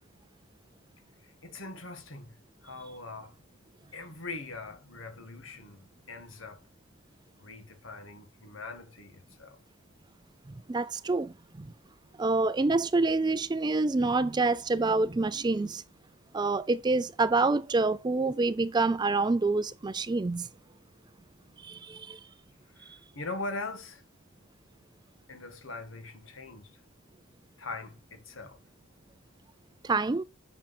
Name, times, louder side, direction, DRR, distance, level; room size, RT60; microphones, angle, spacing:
voice 1, 1.2-2.4 2.6-3.4 3.9-6.6 7.4-9.6 22.8-24.0 25.3-26.7 27.6-28.6, left 3 dB, 70° left, 1.9 m, -41 dB
voice 2, 10.7-11.7 12.2-15.8 16.3-20.5 21.6-22.2 22.9-23.0 29.8-30.2, right 3 dB, 20° right, 0.4 m, -27 dB
8.9 x 6.2 x 4.3 m
head